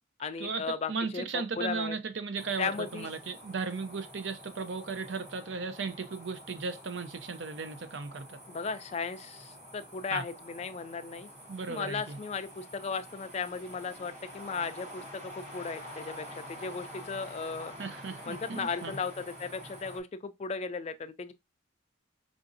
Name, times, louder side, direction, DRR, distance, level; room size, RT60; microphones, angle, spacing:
voice 1, 0.2-2.0 2.6-3.1 8.5-11.3 11.7-17.7 18.3-21.3, left 5 dB, 35° left, 0.3 m, -36 dB
voice 2, 0.9-8.4 10.1-10.2 11.5-12.2 17.8-19.0, right 4 dB, 60° right, 0.6 m, -36 dB
sound 1, 2.4-20.0, equal, 35° right, 1.1 m, -48 dB
4.9 x 2.6 x 2.6 m
head